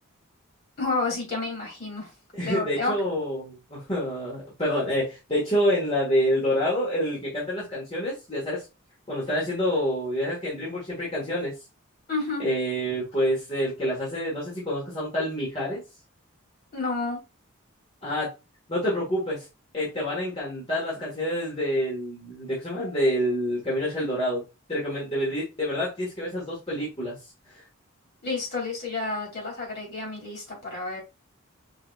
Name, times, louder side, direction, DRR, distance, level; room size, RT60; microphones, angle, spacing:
voice 1, 0.8-2.1 2.4-2.9 12.1-12.4 16.7-17.2 28.2-31.0, left 3 dB, 50° left, 2.6 m, -30 dB
voice 2, 2.3-8.6 9.1-11.5 12.4-15.8 18.0-18.3 18.7-19.5 19.7-24.4 24.7-27.1 27.5-27.6, equal, 25° left, 1.5 m, -27 dB
4.8 x 3.8 x 2.3 m
head